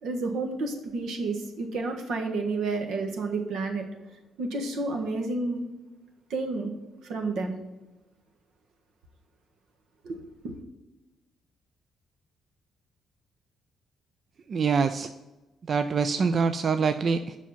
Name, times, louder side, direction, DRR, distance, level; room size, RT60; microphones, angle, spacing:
voice 1, 0.0-3.8 4.4-5.7 6.3-6.7 7.0-7.6 10.0-10.2 10.4-10.5, right 3 dB, 75° right, 3 dB, 1.4 m, -30 dB
voice 2, 14.5-15.1 15.7-17.4, right 5 dB, 40° right, 9 dB, 0.3 m, -25 dB
7.4 x 5.5 x 5.7 m, 1.1 s
cardioid pair, 140°, 0 cm